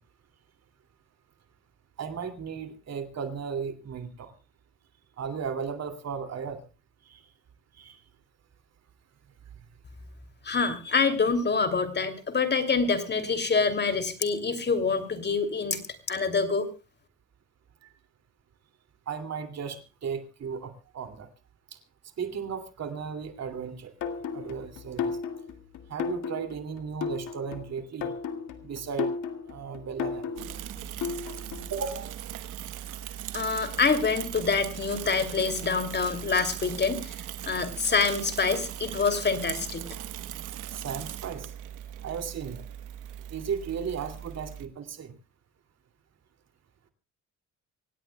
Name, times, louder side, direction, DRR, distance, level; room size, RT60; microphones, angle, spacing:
voice 1, 2.0-4.3 5.2-6.6 7.1-7.2 7.8-8.0 19.1-21.3 22.2-23.9 24.3-25.2 25.9-28.1 28.6-29.1 29.5-30.5 31.7-32.1 40.7-41.5 42.0-42.6 43.3-45.1, right 6 dB, 60° right, 8 dB, 2.7 m, -35 dB
voice 2, 10.4-15.8 16.1-16.7 33.3-37.1 37.4-39.9, left 4 dB, 35° left, 9 dB, 2.8 m, -26 dB
sound 1, 24.0-31.8, left 6 dB, 80° left, 2.2 m, -34 dB
Bicycle / Mechanisms, 30.4-44.7, right 11 dB, 90° right, 1.2 m, -39 dB
25.5 x 17.0 x 2.3 m, 0.30 s
cardioid pair, 90°, 30 cm